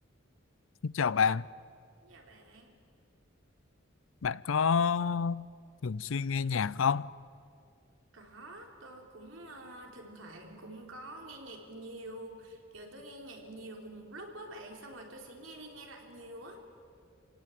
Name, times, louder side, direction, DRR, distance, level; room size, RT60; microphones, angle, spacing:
voice 1, 0.8-1.4 4.2-5.5 5.8-7.1, left 6 dB, 80° left, 0.5 m, -28 dB
voice 2, 2.0-2.7 8.1-16.6, right 1 dB, 75° right, 3.8 m, -47 dB
27.5 x 17.5 x 9.4 m
head